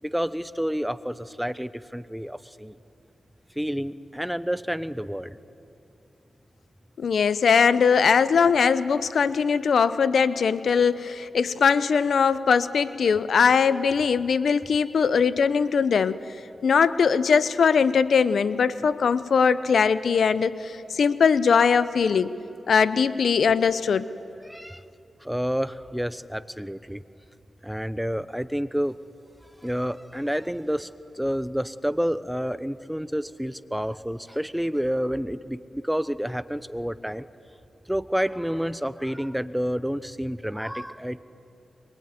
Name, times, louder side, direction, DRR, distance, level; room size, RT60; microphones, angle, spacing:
voice 1, 0.0-2.7 3.5-5.4 24.4-24.8 25.2-27.0 27.6-29.0 29.6-37.3 37.9-41.2, equal, 5° right, 15 dB, 0.9 m, -29 dB
voice 2, 7.0-16.2 16.6-22.3 22.7-24.1, left 6 dB, 75° left, 15 dB, 0.8 m, -21 dB
23.5 x 23.0 x 9.5 m, 2.7 s
cardioid pair, 50°, 0 cm